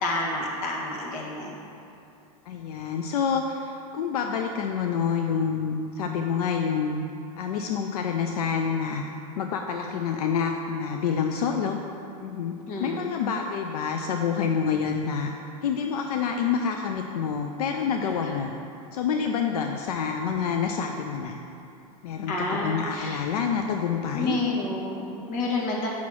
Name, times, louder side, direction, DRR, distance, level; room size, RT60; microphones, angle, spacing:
voice 1, 0.0-1.6 12.7-13.0 22.3-23.2 24.1-25.9, left 2 dB, 45° left, -2 dB, 1.5 m, -29 dB
voice 2, 2.5-7.1 7.4-9.0 9.4-11.8 12.2-12.5 12.8-15.3 15.6-18.5 18.9-21.4 22.0-24.4, left 6 dB, 80° left, 4 dB, 0.5 m, -27 dB
5.7 x 4.3 x 6.2 m, 2.7 s
supercardioid pair, 125°, 19 cm